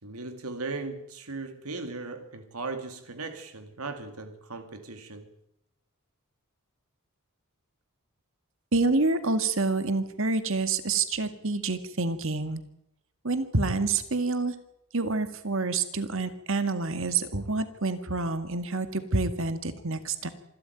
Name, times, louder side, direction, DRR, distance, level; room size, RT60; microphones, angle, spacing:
voice 1, 0.0-5.3 17.3-17.5, right 3 dB, 85° right, 8 dB, 2.3 m, -37 dB
voice 2, 8.7-12.6 13.2-14.6 14.9-20.3, right 3 dB, 65° right, 10 dB, 2.0 m, -27 dB
26.0 x 12.5 x 9.2 m, 0.82 s
head